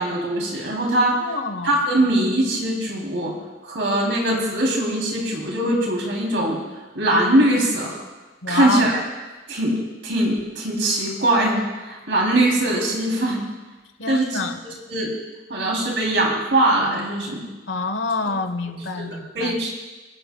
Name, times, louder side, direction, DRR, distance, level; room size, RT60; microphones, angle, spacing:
voice 1, 0.0-1.2 1.6-3.3 3.6-6.6 6.9-8.0 8.5-9.0 9.5-13.4 14.1-14.4 14.9-15.2 15.5-17.5 19.0-19.7, right 1 dB, 75° right, -2 dB, 3.3 m, -21 dB
voice 2, 0.9-1.7 8.4-8.9 14.0-14.6 17.7-19.5, left 3 dB, 85° left, 8 dB, 1.1 m, -27 dB
29.5 x 11.0 x 2.3 m, 1.2 s
head